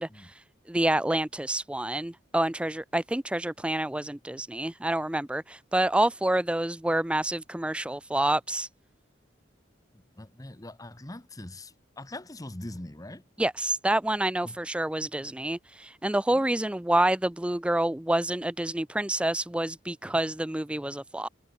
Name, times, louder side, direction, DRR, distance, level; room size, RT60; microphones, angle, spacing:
voice 1, 0.0-8.7 13.4-21.3, right 1 dB, 5° right, 0.4 m, -28 dB
voice 2, 9.9-13.2 14.4-14.6 16.3-16.5 20.0-20.2, left 1 dB, 20° left, 1.2 m, -42 dB
head